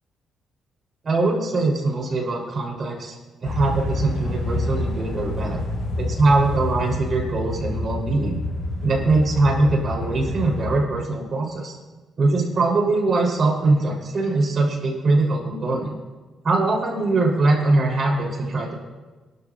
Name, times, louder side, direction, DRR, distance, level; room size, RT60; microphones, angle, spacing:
voice 1, 1.0-3.1 3.4-5.6 6.0-8.4 8.8-11.8 12.2-15.9 16.4-18.7, right 2 dB, 35° right, -2 dB, 3.5 m, -22 dB
sound 1, 3.4-10.8, left 2 dB, 70° left, 5.3 m, -28 dB
27.5 x 12.0 x 2.5 m, 1.3 s
cardioid pair, 170°, 0 cm